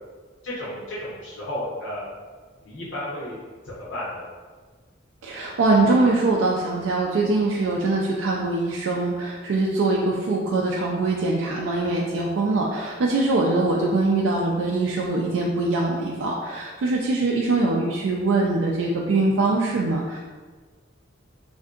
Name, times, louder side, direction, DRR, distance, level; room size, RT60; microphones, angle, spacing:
voice 1, 0.4-2.1 2.6-3.4 3.6-4.2, left 1 dB, 75° left, -8 dB, 0.7 m, -33 dB
voice 2, 5.2-20.2, right 2 dB, 85° right, -2 dB, 0.3 m, -23 dB
3.6 x 2.5 x 2.4 m, 1.4 s
head